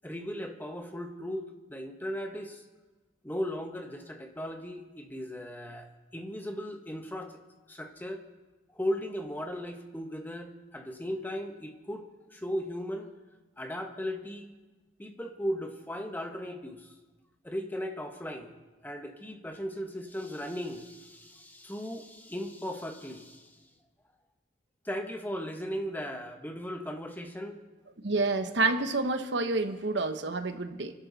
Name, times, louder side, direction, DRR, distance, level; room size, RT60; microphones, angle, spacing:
voice 1, 0.0-1.4 1.7-2.6 3.2-7.4 7.7-8.2 8.7-13.1 13.6-14.5 15.0-16.9 17.4-18.6 18.8-23.6 24.8-27.6, equal, 10° left, 4 dB, 1.3 m, -37 dB
voice 2, 28.0-30.9, right 3 dB, 65° right, 7 dB, 1.1 m, -28 dB
29.0 x 11.0 x 4.1 m, 1.2 s
head